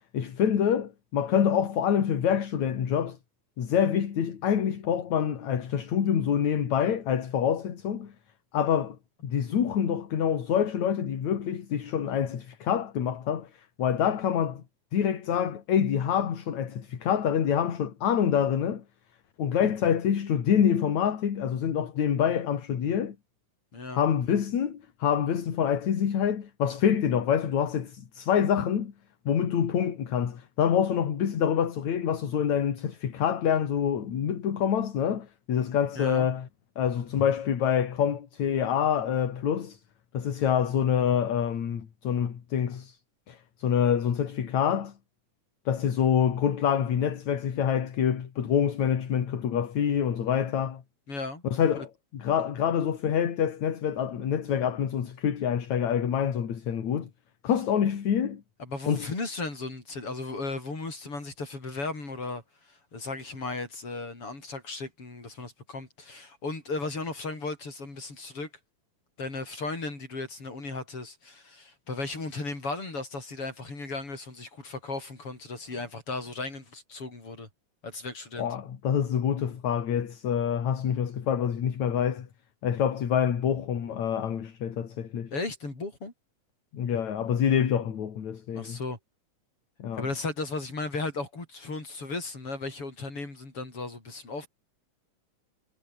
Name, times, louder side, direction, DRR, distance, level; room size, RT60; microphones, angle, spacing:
voice 1, 0.1-3.2 3.6-8.1 8.5-9.0 9.2-13.5 13.8-14.6 14.9-18.8 19.4-23.2 23.9-28.9 29.3-36.5 36.8-39.8 40.1-43.0 43.3-44.9 45.7-50.8 51.4-57.1 57.4-58.4 58.9-59.1 78.4-82.3 82.6-85.3 86.7-88.8 89.8-90.0, left 8 dB, 65° left, 3.6 m, -26 dB
voice 2, 23.7-24.1 36.0-36.3 51.1-51.4 51.8-51.9 58.6-68.5 69.2-77.5 77.8-78.5 85.3-86.1 88.5-89.0 90.0-94.5, left 3 dB, 45° left, 7.9 m, -36 dB
omnidirectional pair, 3.5 m